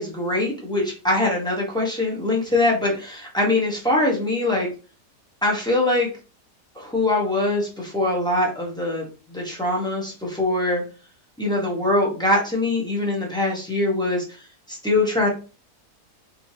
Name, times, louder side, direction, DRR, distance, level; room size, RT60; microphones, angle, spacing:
voice 1, 0.0-4.7 5.4-6.1 6.8-10.8 11.4-14.2 14.7-15.3, left 2 dB, 5° left, -4 dB, 0.7 m, -23 dB
3.3 x 3.0 x 2.7 m, 0.34 s
omnidirectional pair, 1.7 m